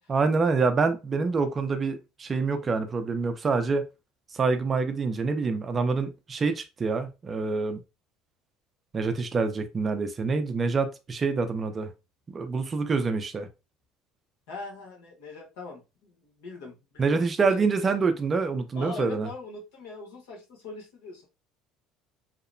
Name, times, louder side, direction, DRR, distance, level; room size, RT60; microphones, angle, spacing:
voice 1, 0.1-3.8 4.3-7.8 8.9-11.9 12.3-13.5 17.0-19.3, right 4 dB, 25° right, 0.4 m, -26 dB
voice 2, 14.5-17.2 18.7-21.3, left 3 dB, 85° left, 1.1 m, -41 dB
2.8 x 2.0 x 2.5 m
cardioid pair, 135°, 0 cm